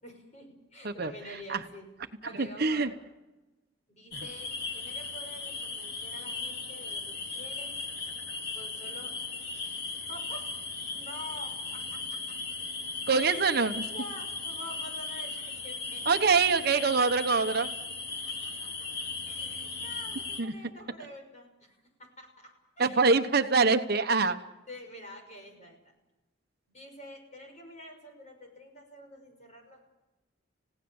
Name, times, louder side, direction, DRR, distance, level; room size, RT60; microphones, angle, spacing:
voice 1, 0.0-2.9 3.9-7.8 8.5-9.1 9.5-10.4 10.9-12.3 13.1-16.2 16.5-16.6 18.2-18.7 19.2-22.5 22.8-23.1 24.7-25.8 26.7-29.8, left 1 dB, 35° left, 4 dB, 5.8 m, -47 dB
voice 2, 2.4-2.9 4.1-4.2 13.1-13.9 16.1-17.7 20.4-20.5 22.8-24.4, right 4 dB, 55° right, 7 dB, 1.1 m, -24 dB
sound 1, 4.1-20.4, left 4 dB, 55° left, 3.2 m, -37 dB
29.0 x 17.0 x 7.2 m, 1.1 s
head